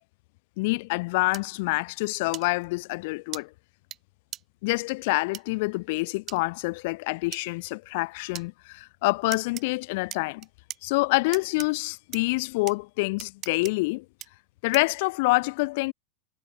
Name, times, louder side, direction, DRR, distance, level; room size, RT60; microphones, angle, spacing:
voice 1, 0.6-3.5 4.6-10.5 10.8-14.0 14.6-15.9, left 25 dB, 45° left, 1.6 m, -27 dB
sound 1, 1.3-1.4 2.3-2.4 3.3-3.4 3.9-4.0 4.3-4.4 5.3-5.4 6.3-6.4 7.3-7.4 8.3-8.5 9.3-9.6 10.1-10.8 11.3-11.7 12.1-12.2 12.7-12.8 13.2-13.7 14.2-14.3 14.7-15.0, right 12 dB, 25° right, 6.2 m, -38 dB
supercardioid pair, 180°, 0 cm